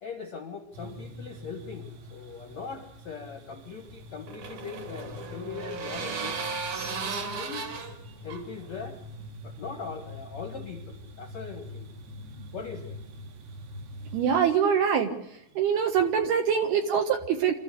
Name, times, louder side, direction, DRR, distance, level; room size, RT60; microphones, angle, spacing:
voice 1, 0.0-6.4 7.3-7.7 8.2-9.0 9.4-11.9 12.5-13.0, left 5 dB, 60° left, 5 dB, 1.8 m, -40 dB
sound 1, 0.7-14.4, left 1 dB, 90° right, 5.4 m, -45 dB
sound 2, 3.7-9.3, right 4 dB, 45° right, 3.1 m, -36 dB
voice 2, 14.1-15.1 15.6-17.5, right 7 dB, 65° right, 5 dB, 2.8 m, -24 dB
26.5 x 14.5 x 8.2 m, 0.74 s
omnidirectional pair, 6.0 m